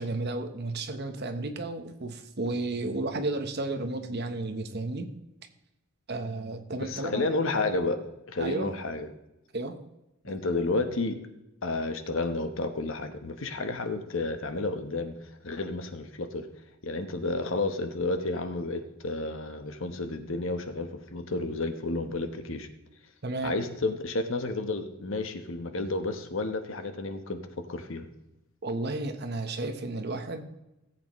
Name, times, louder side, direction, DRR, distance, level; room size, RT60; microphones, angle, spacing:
voice 1, 0.0-5.1 6.1-7.3 8.4-8.7 9.5-9.7 10.3-10.4 23.2-23.5 28.6-30.4, right 2 dB, 50° right, 7 dB, 1.0 m, -33 dB
voice 2, 6.8-8.0 8.3-9.1 10.2-11.2 11.6-15.2 15.4-16.5 16.8-22.7 23.4-28.1, left 2 dB, 60° left, 7 dB, 1.0 m, -31 dB
17.5 x 8.1 x 3.1 m, 0.92 s
head